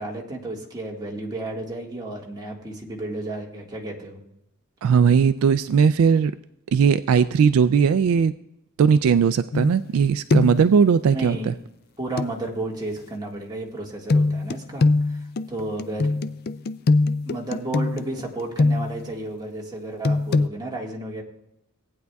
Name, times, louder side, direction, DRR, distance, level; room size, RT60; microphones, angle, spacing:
voice 1, 0.0-4.2 11.1-11.5 12.0-15.2 15.5-16.1 17.2-21.2, right 2 dB, 20° right, -2 dB, 1.7 m, -32 dB
voice 2, 4.8-6.3 6.7-8.3 8.8-11.5, right 6 dB, 65° right, 13 dB, 0.3 m, -18 dB
sound 1, 9.5-10.0 10.3-10.7 12.2-12.3 14.1-19.1 20.0-20.5, left 3 dB, 45° left, 0.4 m, -22 dB
18.0 x 9.4 x 2.3 m, 0.84 s
head